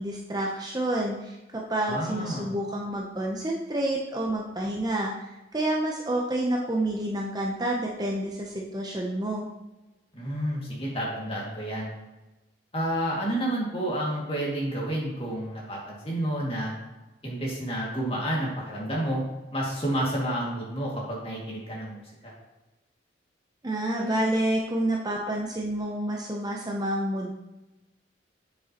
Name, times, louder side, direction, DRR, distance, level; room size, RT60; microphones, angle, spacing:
voice 1, 0.0-9.5 23.6-27.3, right 1 dB, 20° right, -1 dB, 0.6 m, -29 dB
voice 2, 1.9-2.5 10.1-11.9 12.7-16.7 17.2-19.2 19.5-22.3, right 1 dB, 30° left, -4 dB, 2.0 m, -30 dB
7.3 x 7.2 x 2.9 m, 1.0 s
head